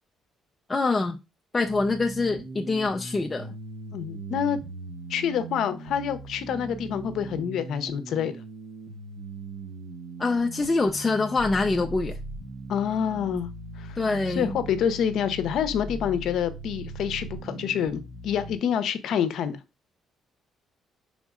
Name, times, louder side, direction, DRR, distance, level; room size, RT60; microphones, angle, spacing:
voice 1, 0.7-1.2 1.5-3.5 10.2-12.2 14.0-14.6, left 3 dB, 25° left, 0.4 m, -25 dB
sound 1, 1.6-18.6, right 2 dB, 70° right, 1.2 m, -39 dB
voice 2, 3.9-4.6 5.1-8.3 12.7-13.5 13.8-14.0 14.4-19.6, left 8 dB, 70° left, 0.6 m, -27 dB
5.1 x 3.6 x 2.4 m
cardioid pair, 90°, 0 cm